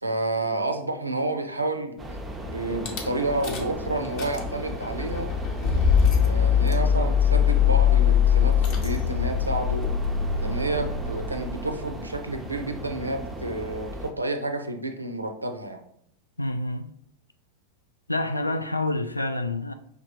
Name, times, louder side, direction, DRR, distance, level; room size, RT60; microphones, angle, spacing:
voice 1, 0.0-5.3 6.2-9.9 10.4-15.8, right 2 dB, 85° right, 0.5 m, -30 dB
sound 1, 2.0-14.1, right 1 dB, 15° right, 0.6 m, -36 dB
Rattle / Car / Engine starting, 2.9-3.0 3.4-3.8 4.0-11.8, left 8 dB, 45° left, 0.9 m, -22 dB
voice 2, 16.4-16.9 18.1-19.7, left 2 dB, 85° left, 0.3 m, -27 dB
5.1 x 3.2 x 2.9 m
figure-of-eight pair, 90°, 0 cm